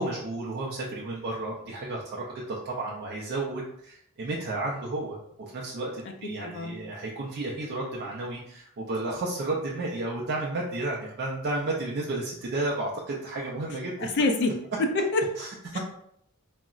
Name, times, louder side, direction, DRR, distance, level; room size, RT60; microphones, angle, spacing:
voice 1, 0.0-14.1 15.4-15.8, right 2 dB, 45° right, -3 dB, 0.4 m, -32 dB
voice 2, 6.2-6.8 14.0-15.3 15.7-15.8, left 2 dB, 50° left, 4 dB, 0.3 m, -27 dB
3.7 x 2.0 x 2.3 m, 0.72 s
head